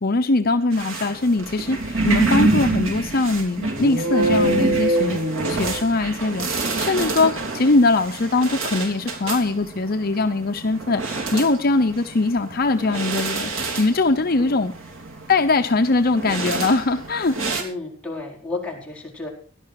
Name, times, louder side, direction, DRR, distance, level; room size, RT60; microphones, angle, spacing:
voice 1, 0.0-5.2 5.5-14.7 15.3-17.4, left 3 dB, 50° left, 6 dB, 0.8 m, -21 dB
sound 1, 0.7-17.6, right 3 dB, 75° right, 3.2 m, -28 dB
sound 2, 3.7-6.2, right 1 dB, 50° right, 3.4 m, -23 dB
voice 2, 17.6-19.3, left 3 dB, 5° left, -2 dB, 4.9 m, -32 dB
17.0 x 11.5 x 4.8 m, 0.42 s
head